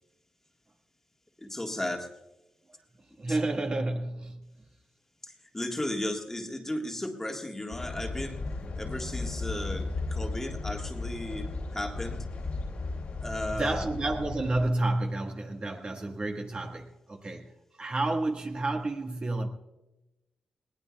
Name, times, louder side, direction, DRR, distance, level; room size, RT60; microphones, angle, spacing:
voice 1, 1.4-2.1 3.3-3.4 5.2-12.3 13.2-13.9, left 1 dB, 15° left, 2 dB, 1.6 m, -35 dB
voice 2, 3.2-4.5 13.5-17.5 17.8-19.5, right 2 dB, 40° right, 2 dB, 1.6 m, -30 dB
sound 1, 7.7-14.7, left 3 dB, 60° left, 2.3 m, -35 dB
21.0 x 18.0 x 2.3 m, 0.96 s
cardioid pair, 90°, 3 cm